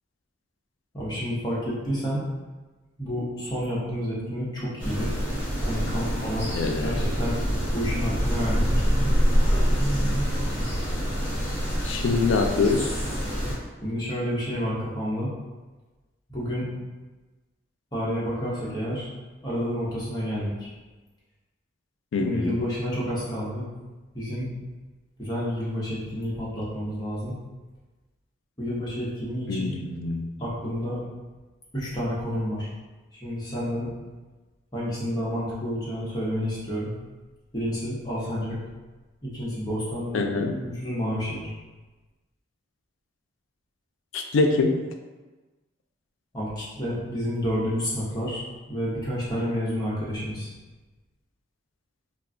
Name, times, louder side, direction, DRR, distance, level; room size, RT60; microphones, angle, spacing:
voice 1, 0.9-2.3 3.0-5.1 5.6-6.5 6.8-7.4 7.7-8.6 13.8-15.3 16.3-16.7 17.9-19.1 19.4-20.7 22.2-23.7 24.1-24.5 25.2-27.4 28.6-29.7 30.4-31.0 31.7-32.7 33.1-33.9 34.7-36.9 37.5-38.6 39.2-40.2 40.6-41.5 46.3-48.4 48.7-50.5, equal, 20° left, -8 dB, 0.7 m, -29 dB
sound 1, 4.8-13.5, equal, 10° right, 0.9 m, -25 dB
voice 2, 6.6-6.9 11.8-12.9 22.1-22.6 29.5-30.3 40.1-40.5 44.1-44.8, left 3 dB, 85° left, 4 dB, 0.4 m, -24 dB
2.4 x 2.2 x 3.7 m, 1.2 s
head